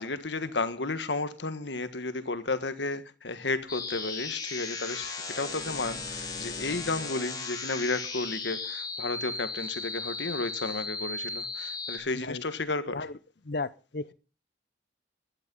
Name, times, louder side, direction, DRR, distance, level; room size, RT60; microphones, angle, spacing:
voice 1, 0.0-13.1, left 3 dB, 75° left, 1.5 m, -33 dB
sound 1, 3.7-12.0, left 4 dB, 20° left, 3.8 m, -36 dB
voice 2, 13.4-14.1, left 3 dB, 55° left, 0.7 m, -34 dB
16.5 x 12.0 x 5.5 m
head